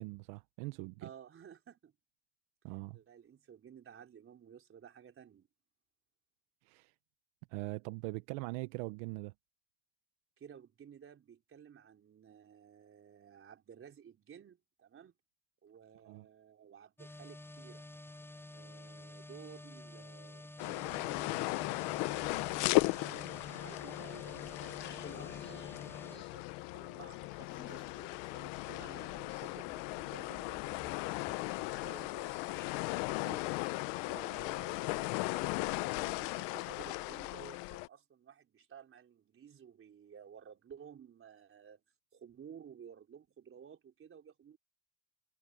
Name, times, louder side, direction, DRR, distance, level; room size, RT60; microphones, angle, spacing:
voice 1, 0.0-1.1 2.6-3.0 6.7-6.9 7.5-9.3 16.0-16.3, right 23 dB, 85° right, 1.0 m, -41 dB
voice 2, 1.0-1.9 2.9-5.5 10.4-15.1 15.6-17.9 18.5-22.4 23.0-27.9 28.3-33.6 34.1-41.8 42.1-44.6, right 8 dB, 40° right, 4.2 m, -55 dB
sound 1, 17.0-26.2, left 1 dB, 5° left, 4.9 m, -50 dB
sound 2, 20.6-37.9, left 23 dB, 85° left, 1.0 m, -37 dB
sound 3, 24.2-33.2, left 6 dB, 35° left, 4.8 m, -54 dB
supercardioid pair, 100°, 35 cm